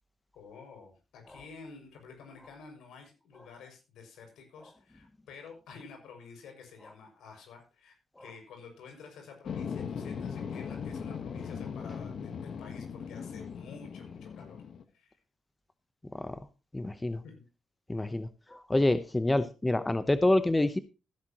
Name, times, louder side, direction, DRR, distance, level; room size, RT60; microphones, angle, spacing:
voice 1, 0.3-14.6 14.9-15.2 17.2-17.5, left 5 dB, 85° left, 4 dB, 6.2 m, -50 dB
sound 1, 9.5-14.8, left 6 dB, 50° left, 1.2 m, -39 dB
voice 2, 16.7-17.2 17.9-20.8, left 1 dB, 10° left, 12 dB, 0.8 m, -27 dB
16.0 x 11.0 x 2.9 m, 0.30 s
cardioid pair, 125°, 0 cm